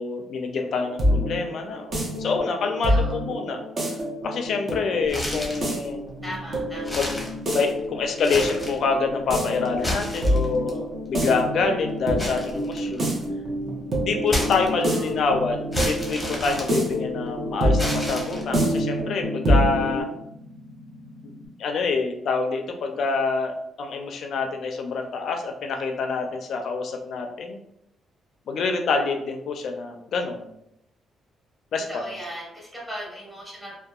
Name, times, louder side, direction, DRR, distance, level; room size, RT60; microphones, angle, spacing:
voice 1, 0.0-3.6 4.2-6.1 6.9-7.1 7.5-13.1 14.0-20.1 21.2-21.3 21.6-23.5 23.8-27.6 28.5-30.5 31.7-32.0, left 4 dB, 65° left, 4 dB, 0.4 m, -26 dB
sound 1, 0.6-20.0, equal, 50° right, 0.8 m, -27 dB
sound 2, 5.0-5.7 6.2-6.3 6.8-7.8 8.1-8.8 9.6-10.7 12.2-13.2 14.3-15.1 15.7-17.3 17.8-18.7, left 1 dB, 10° left, 0.8 m, -31 dB
voice 2, 6.2-7.0 14.8-15.0 31.9-33.8, equal, 10° right, -5 dB, 1.2 m, -37 dB
sound 3, 15.3-21.5, left 1 dB, 75° right, 1.0 m, -45 dB
2.7 x 2.2 x 2.3 m, 0.79 s
cardioid pair, 90°, 0 cm